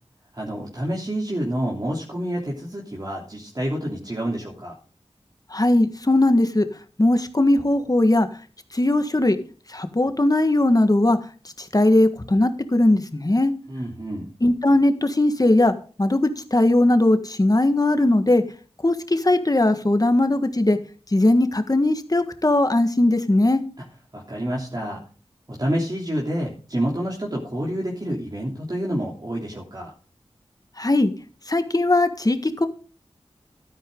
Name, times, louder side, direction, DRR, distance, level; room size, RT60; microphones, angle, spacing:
voice 1, 0.3-4.7 13.7-14.3 24.1-25.0 25.5-29.9, equal, 35° right, -3 dB, 3.1 m, -28 dB
voice 2, 5.5-6.7 7.0-8.3 8.7-9.4 9.7-11.2 11.6-13.5 14.4-18.4 18.8-20.8 21.1-23.6 30.8-31.1 31.5-32.7, left 1 dB, 35° left, 8 dB, 1.6 m, -19 dB
12.5 x 10.5 x 3.8 m, 0.39 s
wide cardioid pair, 40°, 11 cm